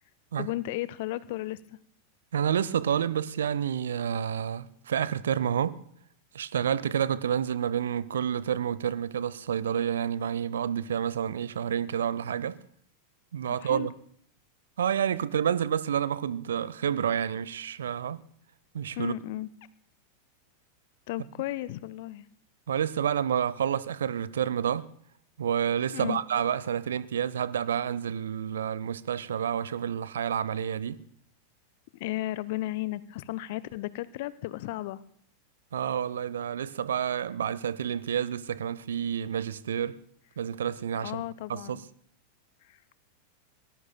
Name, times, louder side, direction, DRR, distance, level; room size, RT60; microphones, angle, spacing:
voice 1, 0.4-1.8 13.5-13.9 19.0-19.5 21.1-22.3 25.9-26.2 31.9-35.0 41.0-41.9 42.6-42.8, left 16 dB, 50° left, 0.5 m, -34 dB
voice 2, 2.3-5.8 6.3-12.6 13.3-13.9 14.8-18.2 18.7-19.1 22.7-24.9 25.4-31.0 35.7-40.0 40.4-41.2 41.5-41.8, right 8 dB, 65° right, 0.6 m, -29 dB
24.5 x 19.0 x 2.2 m
figure-of-eight pair, 90°, 0 cm